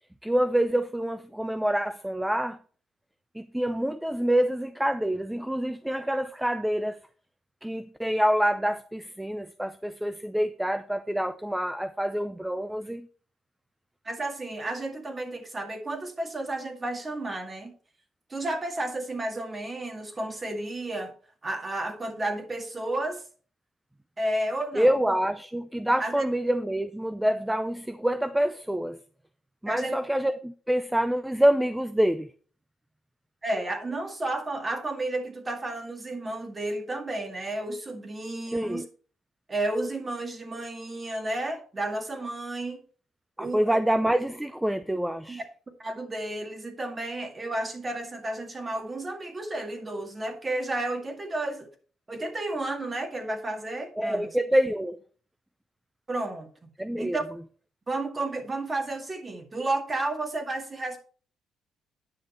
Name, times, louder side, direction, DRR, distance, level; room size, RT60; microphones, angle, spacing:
voice 1, 0.2-2.6 3.3-7.0 7.6-13.1 24.7-29.0 29.6-32.3 38.5-38.9 43.4-45.4 54.0-55.0 56.8-57.2, right 1 dB, 5° right, 0.5 m, -26 dB
voice 2, 14.0-17.7 18.3-21.1 21.4-23.2 24.2-24.9 26.0-26.3 29.7-30.0 33.4-38.8 39.5-42.8 43.4-43.8 45.3-45.4 45.8-51.7 52.1-54.3 56.1-56.7 57.0-57.2 57.9-61.0, right 2 dB, 25° right, 2.1 m, -32 dB
9.8 x 6.5 x 4.4 m
cardioid pair, 90°, 0 cm